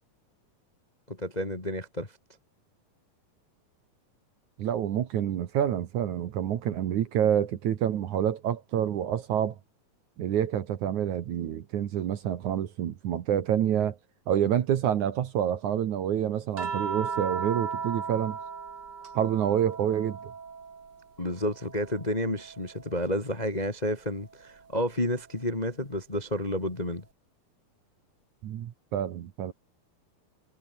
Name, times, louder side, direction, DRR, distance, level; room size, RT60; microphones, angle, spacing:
voice 1, 1.1-2.1 21.2-27.0, left 1 dB, 15° left, 1.6 m, -30 dB
voice 2, 4.6-9.6 10.2-14.0 14.3-18.4 19.1-20.3 28.4-29.5, right 10 dB, 60° right, 2.5 m, -27 dB
sound 1, 16.6-21.0 21.4-23.0 24.6-24.7, right 5 dB, 35° right, 2.4 m, -37 dB
omnidirectional pair, 4.3 m